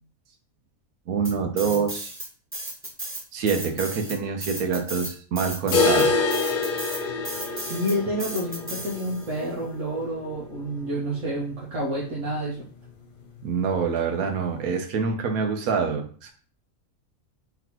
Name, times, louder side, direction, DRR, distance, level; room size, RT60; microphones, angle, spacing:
voice 1, 1.1-2.1 3.3-6.2 13.4-16.3, right 6 dB, 90° right, 6 dB, 1.2 m, -26 dB
sound 1, 1.2-2.3 2.5-9.3, right 1 dB, 15° right, 0.5 m, -35 dB
sound 2, 5.7-11.5 11.8-11.9 12.3-12.4 12.9-13.0 13.8-13.9, left 4 dB, 50° left, 0.7 m, -27 dB
voice 2, 7.5-12.6, equal, 65° right, -5 dB, 1.2 m, -29 dB
4.0 x 3.3 x 3.0 m, 0.43 s
omnidirectional pair, 1.5 m